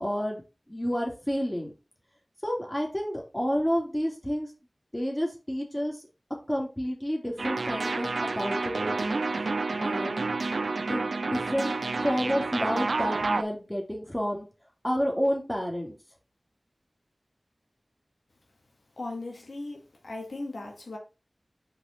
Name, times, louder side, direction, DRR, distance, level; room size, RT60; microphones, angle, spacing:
voice 1, 0.0-1.7 2.4-4.5 4.9-6.0 6.5-9.2 9.8-10.3 10.8-11.7 12.0-14.5 14.8-15.9, equal, 10° left, 2.4 m, -30 dB
sound 1, 7.4-13.4, right 3 dB, 90° right, 0.3 m, -29 dB
voice 2, 19.0-21.0, left 2 dB, 90° left, 1.6 m, -38 dB
4.9 x 4.6 x 4.2 m
wide cardioid pair, 50°, 0 cm